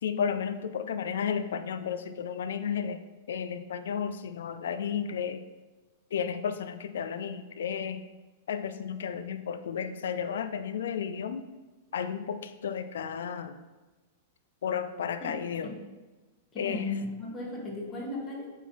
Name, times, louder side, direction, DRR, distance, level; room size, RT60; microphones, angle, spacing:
voice 1, 0.0-3.0 3.3-5.4 6.1-8.0 8.5-11.5 11.9-13.6 14.6-15.7 16.6-16.8, left 7 dB, 65° left, 10 dB, 0.5 m, -33 dB
voice 2, 16.5-18.5, left 3 dB, 20° left, -3 dB, 2.0 m, -36 dB
8.2 x 3.7 x 4.2 m, 1.2 s
figure-of-eight pair, 100°, 0 cm